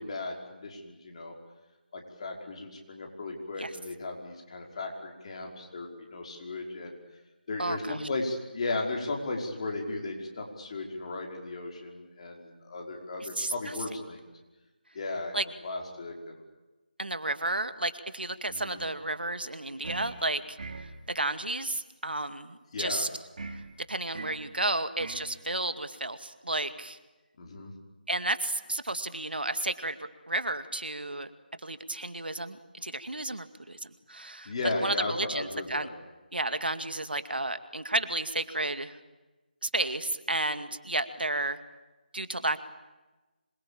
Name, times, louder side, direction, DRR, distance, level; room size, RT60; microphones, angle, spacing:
voice 1, 0.0-1.3 1.9-7.0 7.5-14.3 14.9-16.4 18.5-18.8 22.7-23.1 27.4-27.7 34.5-35.9, left 2 dB, 40° left, 1 dB, 5.4 m, -36 dB
voice 2, 7.6-8.0 13.4-13.5 15.3-15.4 17.0-20.6 21.1-23.1 23.9-27.0 28.1-30.0 30.3-31.3 31.6-34.5 34.8-35.9 36.3-39.0 39.6-41.6 42.1-42.6, right 2 dB, 80° right, 10 dB, 2.2 m, -32 dB
sound 1, 19.8-20.2 20.6-20.9 23.4-23.6 24.1-24.5 25.0-25.3, right 3 dB, 55° right, 3.6 m, -40 dB
26.5 x 23.5 x 8.8 m, 1.1 s
figure-of-eight pair, 160°, 5 cm